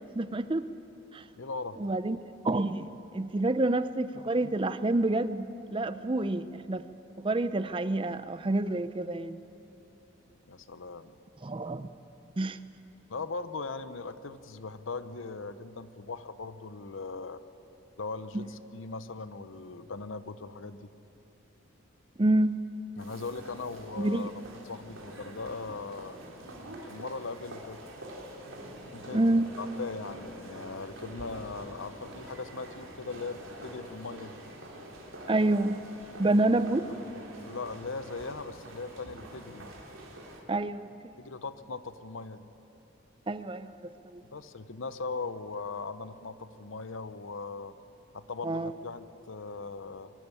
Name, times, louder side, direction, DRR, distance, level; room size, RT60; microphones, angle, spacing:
voice 1, 0.2-0.7 1.1-1.2 1.8-2.2 2.4-6.8 7.2-9.4 11.4-11.9 12.4-12.6 18.3-18.4 22.2-22.6 24.0-24.3 29.1-29.5 35.3-35.8 36.2-36.9 40.5-41.1 43.3-44.2 48.4-48.7, right 2 dB, 25° right, 13 dB, 0.5 m, -28 dB
voice 2, 1.3-1.9 10.5-11.1 13.1-17.4 18.0-20.9 23.0-24.3 24.6-26.2 26.9-27.9 28.9-34.4 37.4-39.7 41.2-42.4 44.3-47.7 48.1-50.1, left 4 dB, 70° left, 13 dB, 0.8 m, -39 dB
sound 1, 23.0-40.4, right 1 dB, 75° right, 3.6 m, -46 dB
23.0 x 12.5 x 9.8 m, 3.0 s
head